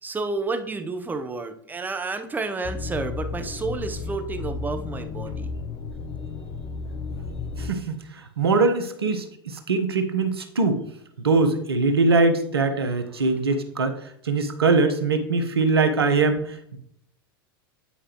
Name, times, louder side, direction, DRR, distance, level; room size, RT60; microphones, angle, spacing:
voice 1, 0.0-5.5, right 3 dB, 15° right, 7 dB, 0.9 m, -30 dB
sound 1, 2.6-7.7, left 4 dB, 35° left, 0.7 m, -33 dB
voice 2, 7.6-10.8 11.2-16.8, right 3 dB, 85° right, 7 dB, 1.1 m, -22 dB
9.9 x 4.8 x 3.0 m, 0.69 s
hypercardioid pair, 95°, 13 cm